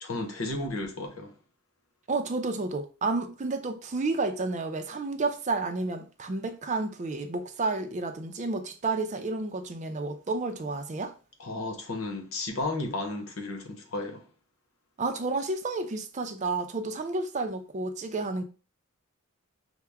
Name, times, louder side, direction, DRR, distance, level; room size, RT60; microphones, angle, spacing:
voice 1, 0.0-1.3 11.4-14.2, left 2 dB, 85° left, 0.9 m, -33 dB
voice 2, 2.1-11.1 15.0-18.4, right 3 dB, 35° right, 0.5 m, -31 dB
5.7 x 2.1 x 3.5 m
head